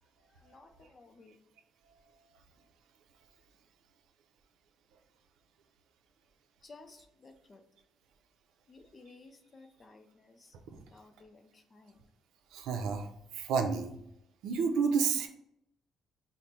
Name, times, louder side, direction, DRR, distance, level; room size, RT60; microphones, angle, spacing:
voice 1, 0.4-1.4 6.6-7.6 8.7-10.6 10.9-12.0, left 3 dB, 25° left, 6 dB, 0.5 m, -56 dB
voice 2, 12.5-14.0 14.4-15.3, right 5 dB, 90° right, 5 dB, 0.6 m, -30 dB
5.1 x 2.1 x 4.3 m, 0.76 s
cardioid pair, 145°, 0 cm